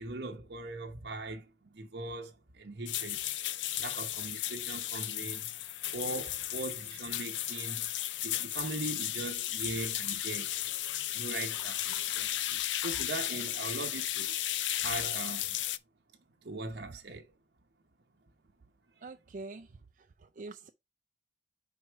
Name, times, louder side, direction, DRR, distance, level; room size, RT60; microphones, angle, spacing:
voice 1, 0.0-3.2 3.8-5.5 5.9-10.5 11.1-14.3 14.8-15.6 16.4-17.3 19.0-19.1, right 2 dB, 70° right, 0.9 m, -40 dB
sound 1, 2.9-15.8, left 13 dB, 90° left, 0.5 m, -35 dB
voice 2, 19.0-19.7 20.0-20.7, right 3 dB, 45° right, 0.4 m, -45 dB
5.3 x 4.8 x 4.5 m
head